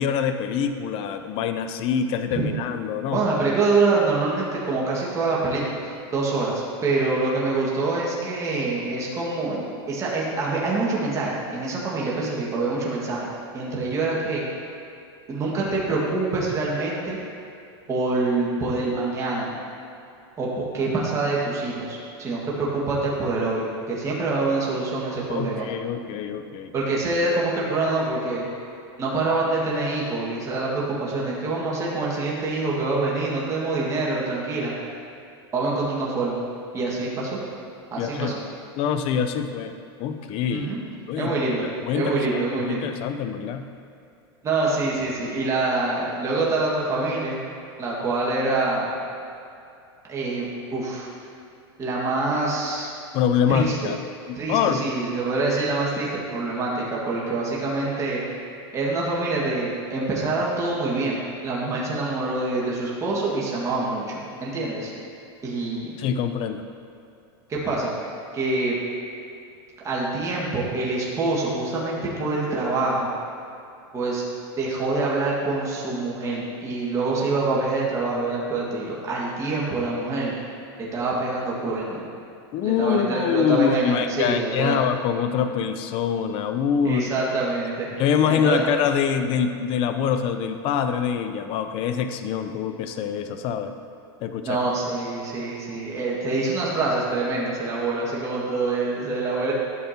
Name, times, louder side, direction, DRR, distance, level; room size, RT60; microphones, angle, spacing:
voice 1, 0.0-3.2 25.3-26.7 38.0-40.7 41.1-41.3 41.6-43.6 53.1-54.0 54.3-54.8 66.0-66.6 82.5-87.0 88.0-93.7 94.2-94.6, left 7 dB, 45° left, 8 dB, 0.5 m, -25 dB
voice 2, 3.1-5.6 6.1-13.3 13.5-14.4 15.3-17.2 17.9-19.5 20.4-25.7 26.7-28.5 29.0-34.7 35.5-36.4 36.7-37.4 37.9-38.3 40.5-40.8 41.2-41.7 41.9-42.9 44.4-47.4 47.8-48.9 50.1-51.1 51.8-52.9 53.5-53.9 54.3-58.2 58.7-64.9 65.4-65.9 67.5-67.9 68.3-68.8 69.8-73.1 73.9-74.2 74.6-80.3 80.8-82.0 82.6-84.8 86.8-87.9 88.2-88.7 94.4-99.5, right 3 dB, 20° right, -5 dB, 1.7 m, -25 dB
12.0 x 7.1 x 2.9 m, 2.6 s
supercardioid pair, 130°, 14 cm